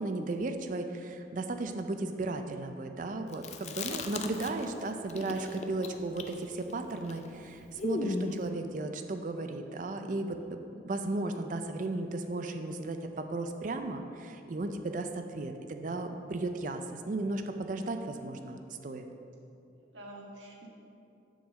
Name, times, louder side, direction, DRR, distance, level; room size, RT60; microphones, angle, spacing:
voice 1, 0.0-19.0, right 2 dB, 45° right, 6 dB, 0.4 m, -35 dB
Chewing mastication, 3.3-4.8 5.1-8.5, left 2 dB, 35° left, 0.4 m, -37 dB
voice 2, 4.1-4.6 19.8-20.7, right 1 dB, 85° right, -2 dB, 1.4 m, -47 dB
7.0 x 3.9 x 6.3 m, 2.7 s
head